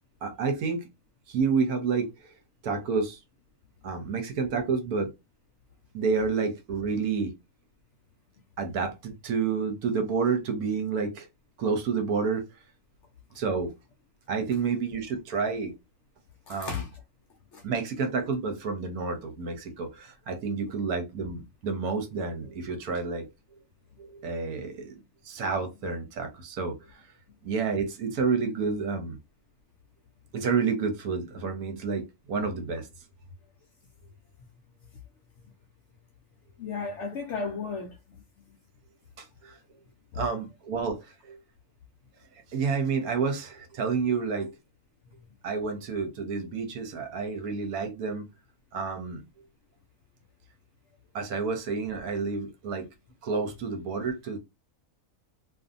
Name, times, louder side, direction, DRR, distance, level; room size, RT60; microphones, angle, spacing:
voice 1, 0.2-0.8 1.3-2.1 2.6-3.2 3.8-5.1 5.9-7.3 8.6-11.3 11.6-12.4 13.4-13.7 14.3-15.7 16.5-16.8 17.6-23.3 24.0-24.9 25.2-26.7 27.4-29.2 30.3-32.9 39.2-39.6 40.2-41.4 42.5-44.5 45.4-48.3 48.7-49.2 51.1-52.9 53.2-54.4, right 5 dB, 75° right, 1.2 m, -29 dB
voice 2, 16.5-16.9 17.5-17.6 36.6-38.6 40.1-40.2, left 5 dB, 65° left, 0.7 m, -35 dB
2.6 x 2.4 x 2.5 m
omnidirectional pair, 1.6 m